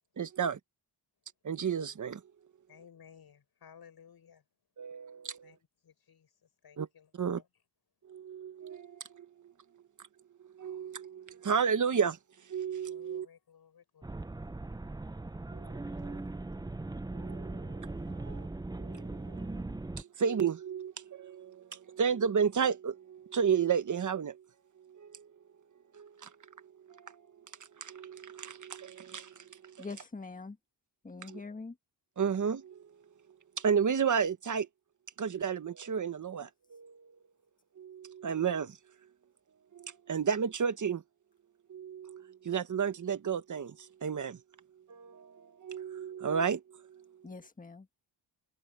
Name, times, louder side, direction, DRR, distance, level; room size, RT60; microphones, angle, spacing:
voice 1, 0.2-0.6 1.4-2.2 4.8-5.5 6.8-6.9 7.2-7.4 8.1-8.9 10.6-12.2 12.5-13.3 15.5-15.6 16.0-16.2 17.1-17.4 18.3-18.4 18.9-19.0 20.2-21.5 21.9-24.3 26.0-26.1 27.8-29.3 31.3-31.4 32.2-32.7 33.6-34.7 35.2-36.9 37.8-38.7 39.7-41.0 41.7-43.7 44.0-44.4 44.9-45.2 45.6-46.6, right 7 dB, 45° right, 1.4 m, -31 dB
voice 2, 2.7-4.4 5.4-7.5 12.8-14.2 15.8-16.1, left 7 dB, 60° left, 6.2 m, -58 dB
sound 1, 14.0-20.0, right 2 dB, 10° right, 0.6 m, -39 dB
voice 3, 29.8-30.6 31.0-31.8 47.2-47.9, left 4 dB, 20° left, 1.5 m, -43 dB
cardioid pair, 105°, 42 cm